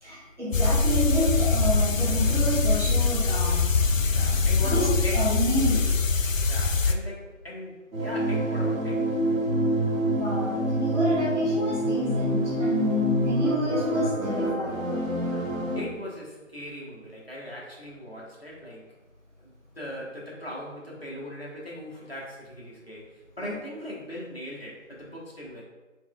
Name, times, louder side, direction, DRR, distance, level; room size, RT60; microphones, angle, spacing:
voice 1, 0.0-3.6 4.6-4.9 5.1-5.8 10.1-14.9 23.4-23.5, equal, 60° right, -6 dB, 1.4 m, -29 dB
sound 1, 0.5-6.9, left 4 dB, 75° left, 0.5 m, -23 dB
voice 2, 4.1-5.3 6.5-9.1 15.2-15.4 15.8-18.8 19.4-25.6, equal, 50° left, -5 dB, 1.1 m, -39 dB
sound 2, 7.9-15.8, right 1 dB, 85° right, 1.1 m, -26 dB
4.5 x 3.1 x 2.2 m, 1.2 s
figure-of-eight pair, 175°, 40 cm